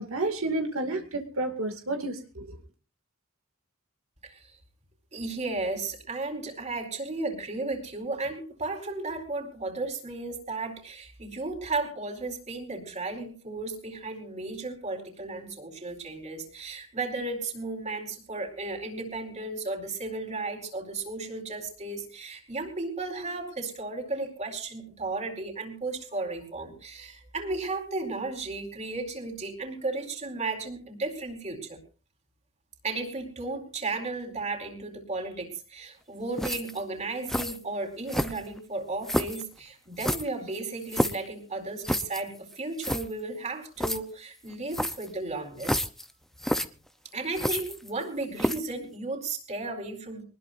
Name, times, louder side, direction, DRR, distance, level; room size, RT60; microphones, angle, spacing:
voice 1, 0.0-2.5, right 2 dB, 85° right, 4 dB, 2.4 m, -31 dB
voice 2, 5.1-31.8 32.8-45.8 47.1-50.2, right 3 dB, 35° right, 3 dB, 4.5 m, -34 dB
sound 1, 36.4-36.8 37.3-37.6 38.1-38.6 39.0-39.4 40.0-41.3 41.8-42.2 42.5-42.6 42.8-43.0 43.8-44.0 44.7-45.1 45.6-46.0 46.4-46.7 47.3-48.0 48.4-48.7, equal, ahead, 0.7 m, -29 dB
23.5 x 20.0 x 2.6 m, 0.37 s
head